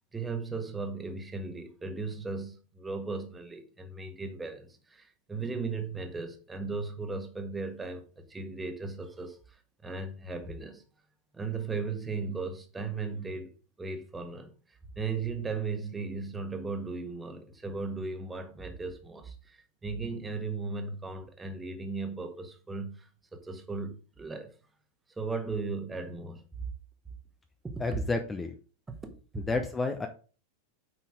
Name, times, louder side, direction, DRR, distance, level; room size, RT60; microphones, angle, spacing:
voice 1, 0.1-10.8 11.3-14.5 15.0-24.5 25.2-26.4 27.6-27.8 28.9-29.4, right 4 dB, 10° right, 1.5 m, -37 dB
voice 2, 27.8-28.6 29.4-30.1, left 3 dB, 15° left, 0.8 m, -30 dB
9.3 x 5.9 x 3.7 m
figure-of-eight pair, 90°, 0 cm